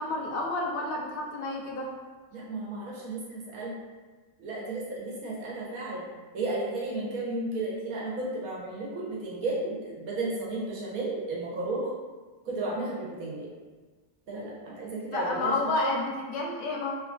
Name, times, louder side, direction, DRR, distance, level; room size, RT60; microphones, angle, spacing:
voice 1, 0.0-1.9 15.1-16.9, left 2 dB, 75° left, -1 dB, 1.0 m, -30 dB
voice 2, 2.3-3.8 4.4-6.1 6.3-11.9 12.5-13.5 14.3-15.9, right 2 dB, 85° right, -4 dB, 1.2 m, -33 dB
3.1 x 2.4 x 2.3 m, 1.3 s
omnidirectional pair, 1.5 m